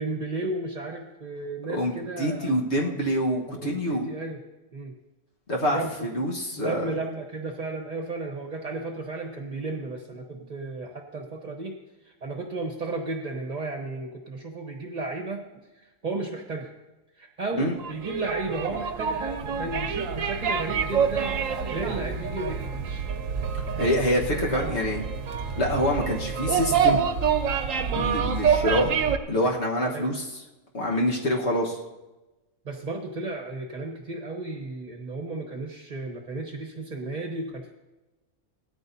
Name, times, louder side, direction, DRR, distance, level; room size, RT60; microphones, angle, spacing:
voice 1, 0.0-2.9 3.5-4.4 4.7-4.9 5.7-11.8 12.0-15.5 15.7-16.7 17.1-23.0 24.5-24.7 27.9-28.1 29.9-30.1 32.6-37.7, right 2 dB, 35° right, 1 dB, 1.1 m, -34 dB
voice 2, 1.7-4.1 5.5-6.9 17.5-17.8 23.8-25.0 25.6-27.0 27.9-28.9 29.3-30.4 30.7-31.8, equal, 55° left, -2 dB, 1.6 m, -26 dB
sound 1, 17.8-29.2, right 6 dB, 70° right, 1.1 m, -27 dB
17.5 x 13.5 x 2.7 m, 1.1 s
omnidirectional pair, 1.4 m